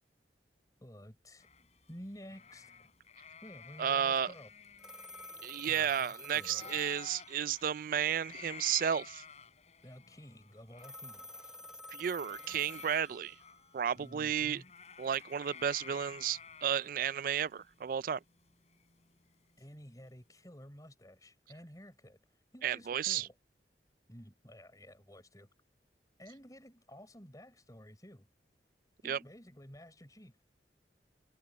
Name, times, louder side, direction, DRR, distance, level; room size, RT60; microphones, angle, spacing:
voice 1, 0.8-1.5 1.9-2.9 3.4-4.5 5.7-6.8 9.8-11.5 13.9-14.7 19.6-23.3 24.1-25.5 26.2-28.3 29.0-30.4, equal, 20° left, 6.4 m, -52 dB
sound 1, 1.4-6.1 6.4-19.3, left 6 dB, 40° left, 5.8 m, -53 dB
voice 2, 3.8-4.3 5.4-9.2 11.9-13.4 13.7-14.6 15.0-18.2 22.6-23.3 29.0-29.2, right 8 dB, 50° right, 0.3 m, -33 dB
Telephone, 4.8-7.6 10.8-13.6, left 1 dB, 5° right, 1.3 m, -50 dB
head